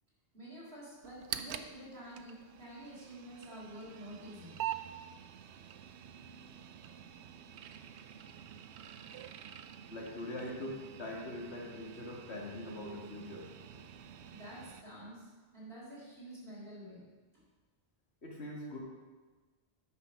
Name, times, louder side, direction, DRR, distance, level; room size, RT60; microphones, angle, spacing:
voice 1, 0.3-4.6 13.7-17.4, right 1 dB, 65° right, -6 dB, 3.9 m, -49 dB
sound 1, 1.0-14.8, right 10 dB, 85° right, 0.9 m, -47 dB
voice 2, 9.9-13.5 18.2-18.8, left 1 dB, 80° left, -1 dB, 2.0 m, -42 dB
9.4 x 5.7 x 6.3 m, 1.4 s
omnidirectional pair, 1.1 m